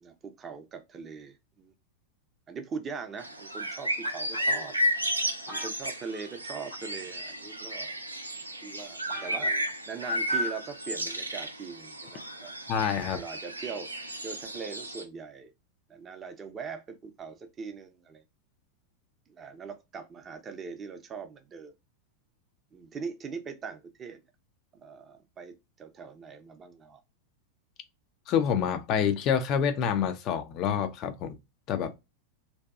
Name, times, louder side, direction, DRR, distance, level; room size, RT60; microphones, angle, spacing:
voice 1, 0.0-1.7 2.5-4.8 5.5-7.9 8.6-9.5 9.9-12.5 13.1-13.9 14.2-15.5 15.9-18.2 19.3-21.7 22.7-24.2 24.7-27.0, right 5 dB, 25° right, 0.5 m, -41 dB
sound 1, 3.2-15.0, equal, 85° right, 0.4 m, -33 dB
sound 2, 4.0-4.7 5.5-6.4 6.7-7.0 7.9-8.0 8.5-8.6 8.8-8.9 9.1-9.7 10.3-10.6 10.9-11.0, left 1 dB, 80° left, 1.1 m, -44 dB
voice 2, 12.7-13.2 28.3-31.4 31.7-32.0, left 8 dB, 35° left, 0.3 m, -27 dB
2.7 x 2.2 x 2.3 m
figure-of-eight pair, 90°, 0 cm